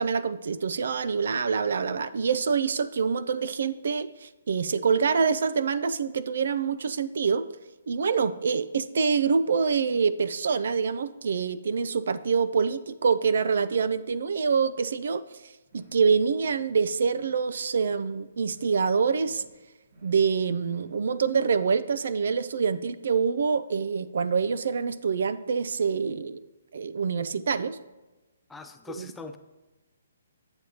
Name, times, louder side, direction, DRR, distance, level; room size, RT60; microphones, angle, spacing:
voice 1, 0.0-7.5 7.9-15.3 15.7-19.4 20.0-26.4 26.7-27.8 29.0-29.1, right 5 dB, 65° right, 14 dB, 0.3 m, -26 dB
sound 1, 15.6-16.1 16.3-16.8 17.0-17.5 17.7-18.2 18.4-18.9 19.1-19.6 19.8-20.3 20.5-21.0, right 1 dB, 45° right, 2.4 m, -56 dB
voice 2, 28.5-29.4, left 3 dB, 10° left, 6 dB, 0.4 m, -41 dB
7.8 x 7.7 x 2.8 m, 1.1 s
hypercardioid pair, 150°, 0 cm